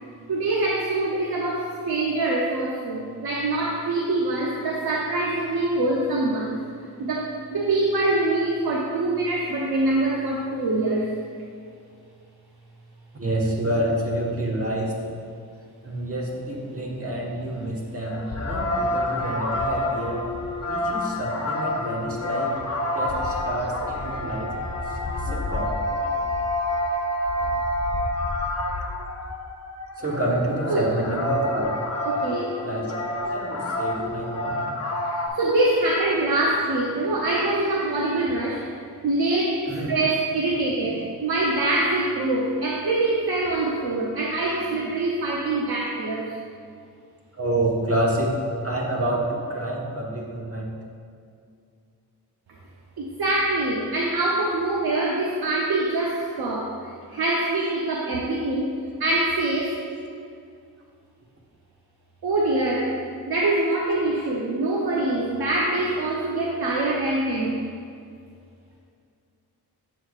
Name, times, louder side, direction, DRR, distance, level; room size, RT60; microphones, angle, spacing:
voice 1, 0.3-6.6 7.0-11.1 30.7-30.9 32.1-32.6 35.3-38.7 39.0-39.6 39.9-46.3 53.0-59.8 62.2-67.6, right 2 dB, 70° right, -3 dB, 0.8 m, -24 dB
voice 2, 13.1-15.0 15.8-20.3 20.7-22.6 22.9-24.5 24.9-25.7 30.0-31.7 32.6-34.7 39.7-39.9 40.8-40.9 47.3-48.4 48.6-50.7, right 1 dB, 35° right, -2 dB, 1.3 m, -28 dB
sound 1, 18.0-35.3, left 1 dB, 40° left, 0.8 m, -28 dB
7.5 x 6.4 x 2.4 m, 2.3 s
cardioid pair, 55°, 38 cm